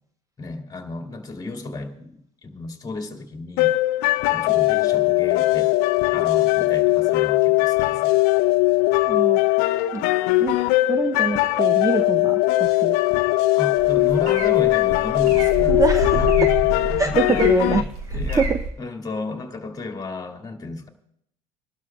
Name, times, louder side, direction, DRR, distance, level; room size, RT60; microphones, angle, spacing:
voice 1, 0.4-3.8 4.3-5.7 6.1-8.2 13.5-15.8 16.1-16.5 16.9-17.8 18.1-18.5 18.8-20.9, left 2 dB, 20° left, 3 dB, 2.0 m, -33 dB
sound 1, 3.6-17.8, left 19 dB, 60° left, 0.6 m, -20 dB
voice 2, 9.1-10.0 10.4-10.6 10.9-13.1 15.7-16.5 17.0-18.6, right 4 dB, 15° right, 8 dB, 0.6 m, -25 dB
sound 2, 13.7-18.7, right 1 dB, 75° right, 3.4 m, -28 dB
27.0 x 12.0 x 2.3 m, 0.75 s
hypercardioid pair, 80°, 20 cm